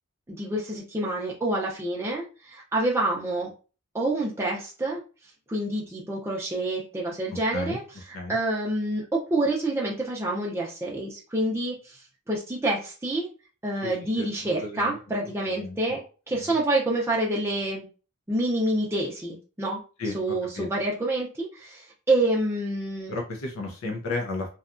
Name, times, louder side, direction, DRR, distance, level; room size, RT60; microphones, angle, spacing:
voice 1, 0.3-3.5 3.9-5.0 5.5-7.8 8.3-12.0 12.3-13.3 13.6-17.9 18.3-19.8 20.1-23.1, right 1 dB, 10° right, -4 dB, 0.5 m, -27 dB
voice 2, 7.3-7.8 8.1-8.4 13.8-15.0 15.5-15.8 16.3-16.6 20.0-20.7 23.1-24.5, left 2 dB, 70° left, 1 dB, 0.6 m, -34 dB
2.8 x 2.3 x 2.4 m, 0.35 s
head